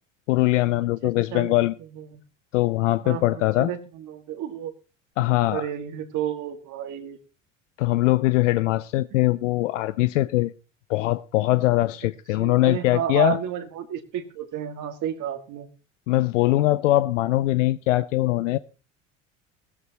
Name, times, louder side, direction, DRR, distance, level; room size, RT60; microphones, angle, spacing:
voice 1, 0.3-1.7 2.5-3.7 5.2-5.6 7.8-10.5 10.9-13.4 16.1-18.6, left 17 dB, 75° left, 15 dB, 0.6 m, -22 dB
voice 2, 1.0-1.5 1.9-2.2 3.0-4.7 5.5-7.2 9.1-9.2 12.4-15.7, right 10 dB, 50° right, 6 dB, 2.1 m, -31 dB
16.5 x 14.0 x 3.0 m, 0.33 s
hypercardioid pair, 70°, 37 cm